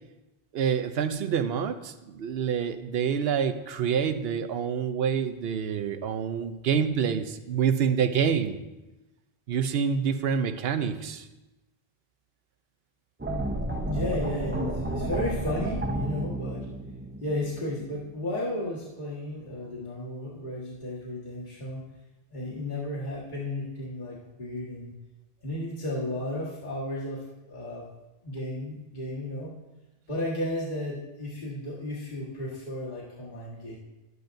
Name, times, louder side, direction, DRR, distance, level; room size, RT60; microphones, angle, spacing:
voice 1, 0.5-8.6 9.5-11.3, right 7 dB, 75° right, 10 dB, 0.9 m, -27 dB
sound 1, 13.2-18.2, right 1 dB, 15° right, 0.6 m, -31 dB
voice 2, 13.9-16.7 17.2-21.8 22.3-24.9 25.4-27.8 28.2-29.5 30.1-33.8, left 1 dB, 50° left, -7 dB, 1.8 m, -33 dB
11.5 x 9.4 x 2.6 m, 1.0 s
omnidirectional pair, 1.0 m